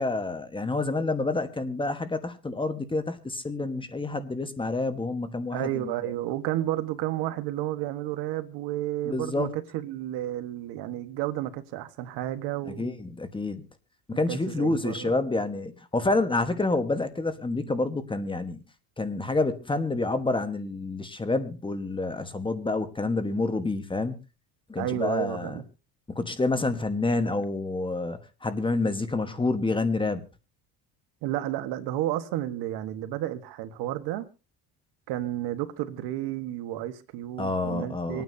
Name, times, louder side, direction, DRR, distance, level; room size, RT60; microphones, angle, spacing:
voice 1, 0.0-5.9 9.0-9.5 12.8-13.6 14.1-18.6 19.0-24.2 24.7-25.6 26.1-30.2 37.4-38.2, left 2 dB, 10° left, 1.2 m, -28 dB
voice 2, 5.5-12.9 14.3-15.2 24.8-25.6 31.2-34.3 35.1-38.2, right 13 dB, 75° right, 1.4 m, -31 dB
26.0 x 9.3 x 2.7 m
cardioid pair, 125°, 40 cm